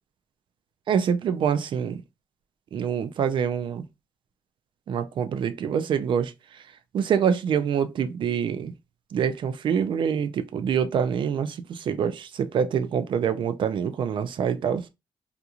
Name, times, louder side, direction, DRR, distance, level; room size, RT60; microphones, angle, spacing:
voice 1, 0.9-2.0 2.7-3.8 4.9-6.6 6.9-8.7 9.1-14.8, right 7 dB, 65° right, 0.4 m, -25 dB
2.8 x 2.5 x 2.4 m
cardioid pair, 110°, 9 cm